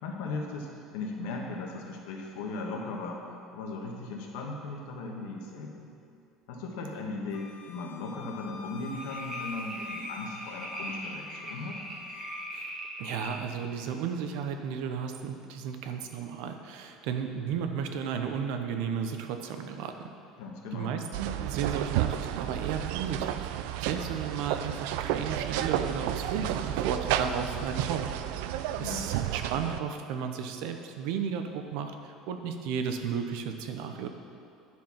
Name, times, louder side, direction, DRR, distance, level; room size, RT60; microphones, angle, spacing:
voice 1, 0.0-3.2 3.5-5.9 6.5-11.8 20.4-21.0 28.8-29.1, left 3 dB, 85° left, 0 dB, 1.4 m, -37 dB
Wind instrument woodwind instrument, 7.3-12.5, left 4 dB, 50° left, 0.7 m, -45 dB
sound 1, 8.9-13.4 13.9-14.0, right 1 dB, 20° right, 1.2 m, -40 dB
voice 2, 13.0-19.9 20.7-23.5 23.8-28.5 28.8-34.1, right 7 dB, 70° right, 6 dB, 0.7 m, -34 dB
sound 2, 21.1-29.8, right 11 dB, 85° right, 0.4 m, -31 dB
10.5 x 4.6 x 5.8 m, 2.6 s
cardioid pair, 170°, 0 cm